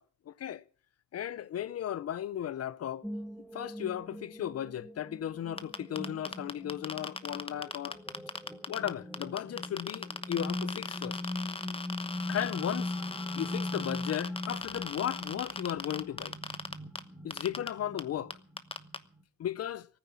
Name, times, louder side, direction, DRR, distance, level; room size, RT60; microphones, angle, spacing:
voice 1, 0.3-0.6 1.1-3.1 3.5-8.0 8.7-11.2 12.3-13.0 13.3-16.3 17.2-18.3 19.4-19.9, left 10 dB, 55° left, 0.7 m, -35 dB
sound 1, 3.0-19.2, left 1 dB, ahead, 1.6 m, -40 dB
sound 2, 5.6-8.9 9.1-17.0 17.3-17.7 18.0-18.1 18.3-19.0, left 3 dB, 20° left, 1.0 m, -38 dB
16.5 x 9.7 x 7.3 m
cardioid pair, 90°, 30 cm